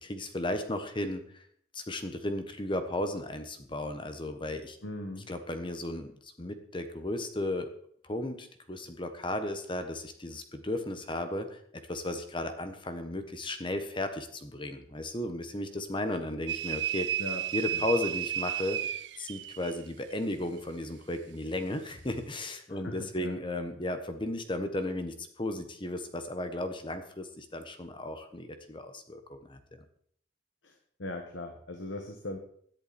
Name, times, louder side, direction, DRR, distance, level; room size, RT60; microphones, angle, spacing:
voice 1, 0.0-1.4 1.7-4.8 5.3-7.7 8.0-11.6 11.9-17.1 17.5-18.8 19.2-29.6, left 1 dB, 25° left, 8 dB, 1.2 m, -35 dB
voice 2, 4.8-5.3 17.2-17.5 17.7-17.8 22.7-23.4 30.6-32.4, left 2 dB, 80° left, 4 dB, 1.7 m, -39 dB
sound 1, 16.5-19.8, right 10 dB, 70° right, 0.6 m, -33 dB
17.0 x 10.5 x 4.4 m, 0.63 s
head